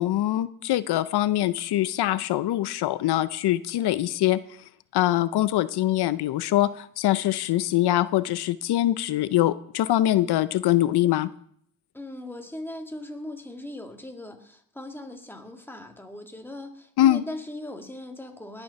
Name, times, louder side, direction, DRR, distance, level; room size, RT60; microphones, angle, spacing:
voice 1, 0.0-4.4 4.9-11.3 17.0-17.2, left 14 dB, 90° left, 15 dB, 0.6 m, -23 dB
voice 2, 11.9-18.6, left 1 dB, 5° left, 4 dB, 1.9 m, -39 dB
20.0 x 7.0 x 5.7 m, 0.66 s
cardioid pair, 90°, 38 cm